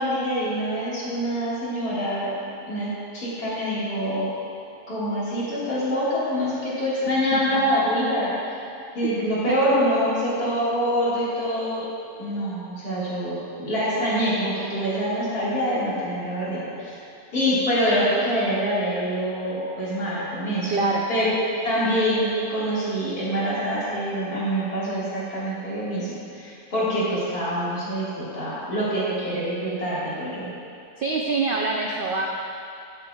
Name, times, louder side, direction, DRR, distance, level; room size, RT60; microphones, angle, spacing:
voice 1, 0.0-2.3 2.7-4.3 4.9-8.3 9.0-11.8 12.2-16.9 17.3-20.7 21.1-21.3 21.6-30.5, equal, 85° left, -9 dB, 2.4 m, -25 dB
voice 2, 7.3-7.6 9.5-9.6 20.7-21.1 31.0-32.3, right 3 dB, 85° right, 0 dB, 0.4 m, -25 dB
9.1 x 8.2 x 2.3 m, 2.6 s
omnidirectional pair, 1.6 m